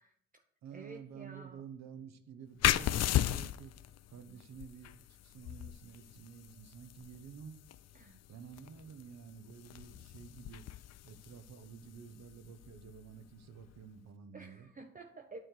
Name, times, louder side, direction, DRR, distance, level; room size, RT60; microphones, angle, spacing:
voice 1, 0.0-0.4 0.7-1.7 7.9-8.2 14.3-15.4, right 3 dB, 30° right, 4 dB, 0.8 m, -51 dB
voice 2, 0.6-7.6 8.3-10.7 11.0-14.7, right 7 dB, 60° right, 9 dB, 1.1 m, -51 dB
sound 1, 2.6-13.9, left 13 dB, 60° left, 0.5 m, -37 dB
9.3 x 4.4 x 6.6 m, 0.66 s
cardioid pair, 90°, 30 cm